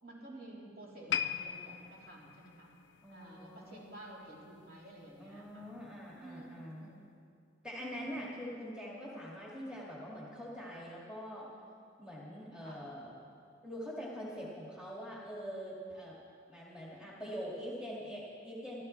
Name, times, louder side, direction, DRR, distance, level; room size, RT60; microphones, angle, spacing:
voice 1, 0.0-2.7 3.1-5.7 6.2-7.2 8.0-8.1 12.6-12.9 17.2-17.3, right 1 dB, 50° right, -5 dB, 3.4 m, -52 dB
sound 1, 1.1-4.4 4.7-5.0 5.6-5.7, left 9 dB, 65° left, 0.4 m, -40 dB
voice 2, 3.0-3.8 5.2-6.8 7.6-11.5 12.0-13.1 13.6-16.1 16.5-18.8, equal, 5° right, -6 dB, 2.1 m, -44 dB
25.0 x 12.5 x 3.2 m, 2.4 s
head